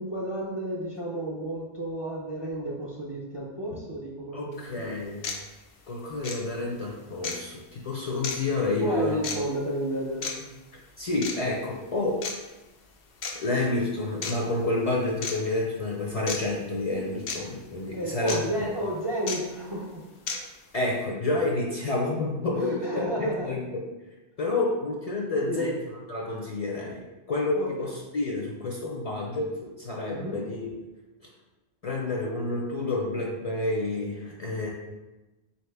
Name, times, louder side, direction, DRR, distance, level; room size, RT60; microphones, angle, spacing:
voice 1, 0.0-4.8 8.7-10.5 17.9-20.0 22.6-23.6 25.4-25.7 27.6-27.9 30.1-30.4, right 1 dB, 35° right, -4 dB, 0.5 m, -32 dB
voice 2, 4.3-5.2 5.9-9.2 11.0-12.1 13.4-18.7 20.7-22.7 23.2-23.8 24.4-30.7 31.8-34.7, left 2 dB, 50° left, -2 dB, 0.5 m, -29 dB
sound 1, 4.5-4.6 5.2-5.4 6.2-6.4 7.2-7.4 8.2-8.4 9.2-9.4 10.2-10.3 11.2-11.4 12.2-12.3 13.2-13.3 14.2-14.4 15.2-15.3 16.3-16.4 17.3-17.4 18.3-18.4 19.3-19.4 20.3-20.4, left 5 dB, 90° left, 0.8 m, -31 dB
3.9 x 2.8 x 3.3 m, 1.1 s
omnidirectional pair, 1.0 m